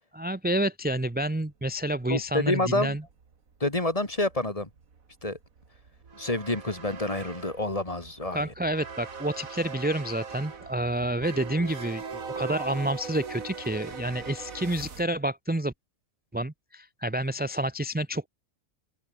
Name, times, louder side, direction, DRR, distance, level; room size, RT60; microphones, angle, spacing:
voice 1, 0.1-3.0 8.3-15.7 16.3-18.3, right 1 dB, 10° right, 0.6 m, -29 dB
sound 1, 1.1-1.3 1.9-2.0 2.2-2.3 2.5-15.0, right 5 dB, 80° right, 2.4 m, -41 dB
voice 2, 2.1-3.0 3.6-4.7 5.2-5.4 6.1-8.5, left 2 dB, 25° left, 2.6 m, -28 dB
open air
omnidirectional pair, 1.4 m